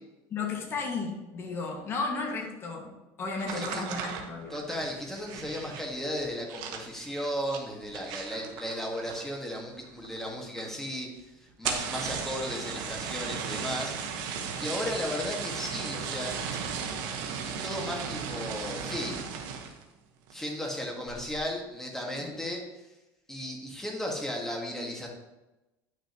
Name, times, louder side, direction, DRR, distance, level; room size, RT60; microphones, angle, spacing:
voice 1, 0.3-2.9 3.2-4.6 22.2-22.3, left 4 dB, 35° left, 1 dB, 1.8 m, -34 dB
sound 1, 3.4-9.5 9.8-10.3 10.6-10.7 10.9-11.0 11.5-19.8 20.3-20.6 21.1-21.4, right 6 dB, 65° right, 1.2 m, -36 dB
voice 2, 3.5-3.8 4.5-13.9 14.4-16.3 17.4-19.2 20.3-22.6 23.3-25.1, equal, 5° left, 0 dB, 1.6 m, -35 dB
9.5 x 6.4 x 3.0 m, 1.0 s
supercardioid pair, 130°, 7 cm